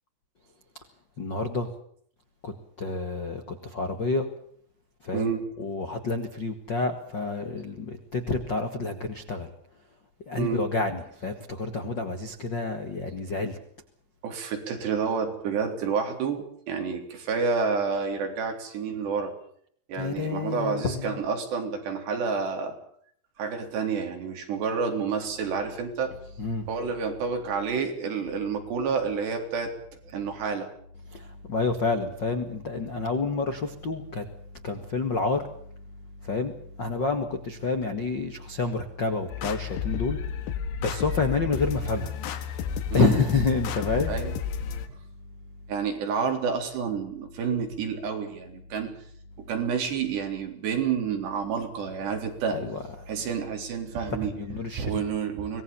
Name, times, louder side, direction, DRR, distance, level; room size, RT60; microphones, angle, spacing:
voice 1, 1.2-1.7 2.4-4.3 5.0-5.3 5.6-9.5 10.3-13.6 20.0-21.2 26.4-26.7 31.1-34.3 34.6-35.5 36.2-36.5 36.8-40.5 40.8-42.1 42.9-44.1 52.5-53.1 54.2-55.0, left 3 dB, 50° left, 7 dB, 1.3 m, -29 dB
voice 2, 5.1-5.4 10.4-10.6 14.2-19.3 19.9-22.7 23.4-26.1 26.7-29.7 30.1-30.7 42.9-43.1 44.1-44.3 45.7-48.9 49.4-52.6 53.1-54.3 54.8-55.6, right 5 dB, 70° right, 4 dB, 5.7 m, -29 dB
sound 1, 39.3-44.9, left 7 dB, 75° left, 3.8 m, -32 dB
25.0 x 19.5 x 7.1 m, 0.64 s
omnidirectional pair, 5.2 m